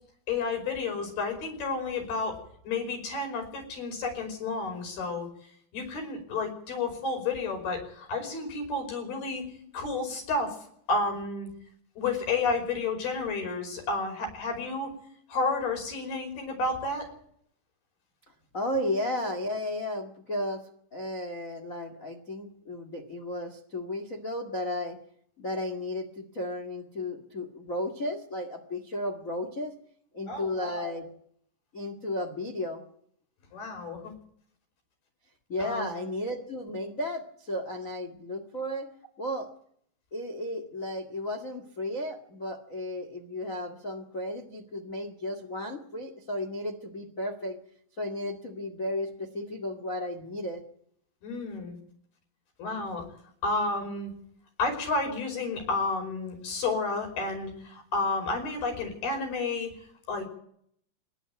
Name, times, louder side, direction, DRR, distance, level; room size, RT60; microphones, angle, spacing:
voice 1, 0.3-2.4 2.6-5.3 5.7-9.5 9.7-10.6 10.9-11.5 12.0-14.9 15.3-17.1 30.3-31.0 33.5-34.1 35.6-35.9 51.2-51.8 52.6-53.1 53.4-54.1 54.6-60.3, left 3 dB, 60° left, 3 dB, 7.1 m, -31 dB
voice 2, 18.5-25.0 25.4-29.7 30.1-31.1 31.7-32.8 35.5-38.9 39.2-39.5 40.1-47.6 48.0-50.6, left 1 dB, 80° left, 5 dB, 0.7 m, -34 dB
26.0 x 11.5 x 9.5 m, 0.67 s
omnidirectional pair, 5.1 m